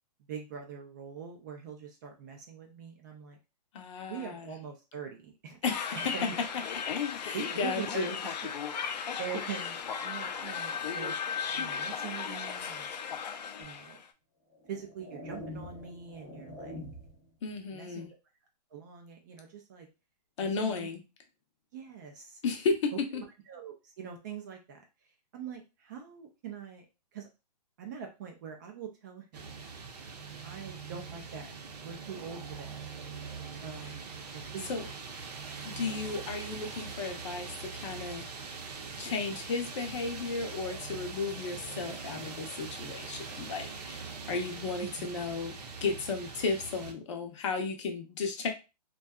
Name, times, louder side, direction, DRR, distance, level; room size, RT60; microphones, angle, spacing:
voice 1, 0.3-3.4 4.1-5.6 5.9-6.4 7.1-8.3 9.2-11.2 11.5-12.9 13.6-14.0 14.7-16.8 17.7-18.1 18.7-19.9 20.4-20.9 21.7-22.4 22.9-24.8 25.3-26.9 27.1-27.3 27.8-29.5 30.4-31.5 31.8-32.8 33.6-35.0 44.8-45.1, right 7 dB, 25° right, 3 dB, 0.4 m, -43 dB
voice 2, 3.7-4.5 5.6-6.0 7.2-8.1 17.4-18.1 20.4-21.0 22.4-22.9 34.7-34.8 35.6-38.3 39.0-45.5 45.8-48.5, left 4 dB, 45° left, 4 dB, 0.6 m, -34 dB
sound 1, 5.6-14.0, left 7 dB, 80° left, 0.5 m, -36 dB
sound 2, 13.6-13.8 14.5-17.3, left 1 dB, 10° left, 0.7 m, -45 dB
sound 3, 29.3-46.9, right 5 dB, 70° right, 0.7 m, -42 dB
2.6 x 2.2 x 2.2 m, 0.28 s
hypercardioid pair, 155°, 21 cm